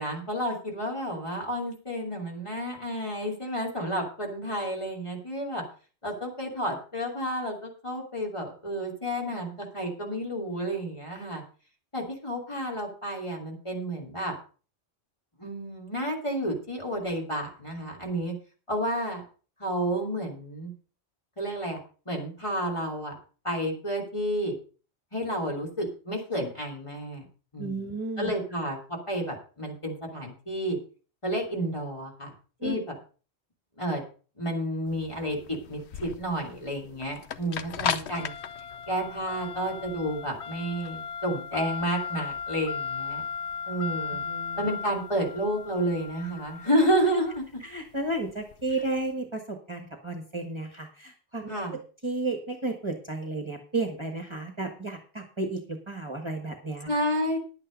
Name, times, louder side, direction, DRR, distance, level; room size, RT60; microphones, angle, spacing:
voice 1, 0.0-5.6 6.0-11.4 11.9-14.3 15.4-18.3 18.7-19.2 19.6-20.7 21.4-21.8 22.1-23.1 23.4-24.5 25.1-27.3 27.5-27.8 28.2-28.8 29.1-30.8 31.2-32.3 32.6-32.8 33.8-34.0 34.4-38.3 38.9-43.2 43.7-44.2 44.6-47.6 51.5-51.8 56.9-57.4, equal, 25° left, -1 dB, 3.0 m, -30 dB
voice 2, 27.6-28.3 32.6-32.8 37.4-37.6 44.1-44.7 47.6-51.5 52.0-56.9, right 2 dB, 25° right, 4 dB, 1.5 m, -33 dB
sound 1, 34.9-49.0, left 7 dB, 75° left, 1.0 m, -36 dB
10.5 x 8.8 x 5.2 m, 0.38 s
omnidirectional pair, 1.1 m